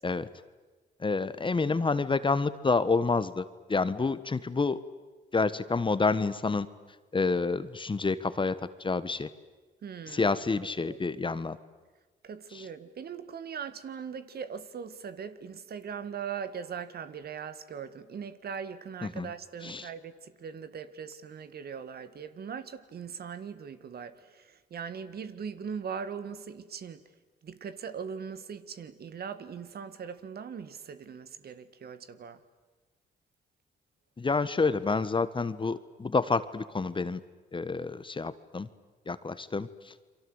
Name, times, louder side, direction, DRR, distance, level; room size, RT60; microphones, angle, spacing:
voice 1, 1.0-4.8 5.3-6.7 7.1-9.3 10.1-11.6 12.5-12.7 19.0-19.3 19.6-19.9 34.2-37.2 37.5-38.7 39.1-39.9, left 4 dB, 25° left, 14 dB, 1.3 m, -28 dB
voice 2, 9.8-10.3 10.8-11.0 12.2-24.2 24.7-27.0 27.4-32.4, right 7 dB, 60° right, 12 dB, 1.8 m, -40 dB
29.5 x 24.0 x 8.0 m, 1.3 s
cardioid pair, 75°, 19 cm